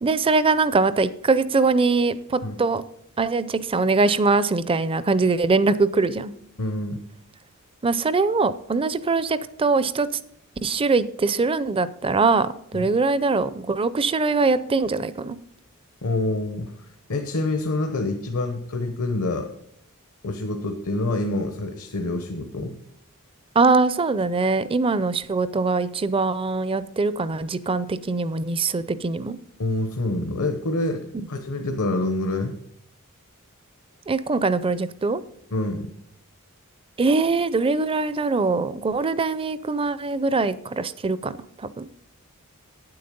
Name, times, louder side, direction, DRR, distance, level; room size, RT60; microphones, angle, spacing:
voice 1, 0.0-2.8 3.2-6.3 7.8-10.1 10.6-15.4 23.6-29.4 34.1-35.2 37.0-41.3 41.6-41.9, right 3 dB, 25° right, 15 dB, 0.4 m, -22 dB
voice 2, 6.6-7.0 12.7-12.9 16.0-19.5 20.2-22.8 29.6-32.6 35.5-35.9, left 2 dB, 75° left, 5 dB, 0.9 m, -27 dB
9.3 x 7.8 x 5.3 m, 0.75 s
head